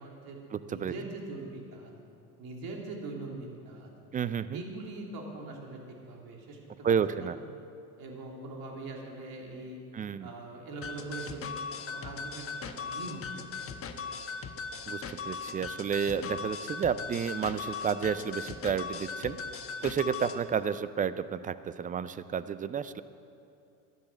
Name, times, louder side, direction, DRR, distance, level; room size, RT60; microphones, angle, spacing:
voice 1, 0.0-1.9 2.4-4.0 4.5-7.3 8.0-9.8 10.2-13.8, right 2 dB, 50° right, 0 dB, 3.3 m, -42 dB
voice 2, 0.5-0.9 4.1-4.6 6.8-7.4 9.9-10.3 14.9-23.0, right 7 dB, 20° right, 14 dB, 0.4 m, -31 dB
sound 1, 10.8-20.4, left 5 dB, 30° left, 1.1 m, -39 dB
13.5 x 10.0 x 7.5 m, 2.6 s
hypercardioid pair, 85°, 45 cm